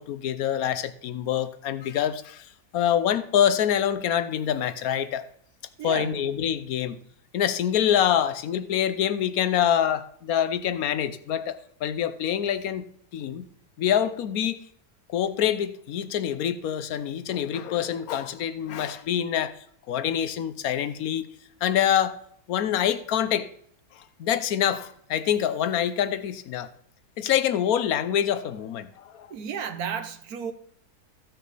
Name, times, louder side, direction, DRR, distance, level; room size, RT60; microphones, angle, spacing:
voice 1, 0.0-2.5 2.7-5.2 5.8-7.0 7.3-12.9 13.1-13.5 13.8-14.6 15.1-19.5 19.9-21.3 21.6-22.1 22.5-23.5 24.2-26.7 27.2-29.3, left 9 dB, 70° left, 1.1 m, -25 dB
voice 2, 5.8-6.1 29.3-30.5, right 7 dB, 70° right, 1.3 m, -32 dB
15.0 x 6.2 x 4.1 m
omnidirectional pair, 1.7 m